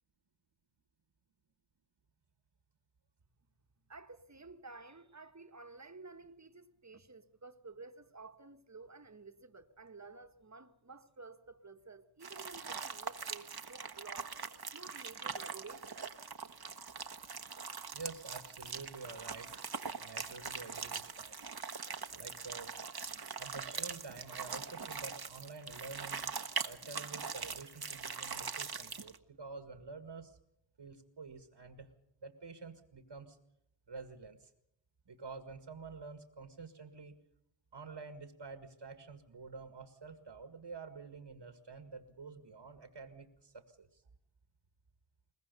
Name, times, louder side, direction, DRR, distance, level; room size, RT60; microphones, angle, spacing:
voice 1, 3.9-14.4 14.7-16.0, right 3 dB, 40° right, 1.6 m, -52 dB
sound 1, 12.2-29.2, right 5 dB, 55° right, 1.3 m, -42 dB
voice 2, 17.9-19.5 20.0-21.4 22.1-22.8 23.4-26.3 26.6-30.4 30.8-31.9 32.2-33.4 33.9-34.5 35.1-37.2 37.7-44.0, right 4 dB, 70° right, 1.9 m, -49 dB
22.5 x 20.0 x 6.8 m
wide cardioid pair, 50°, 44 cm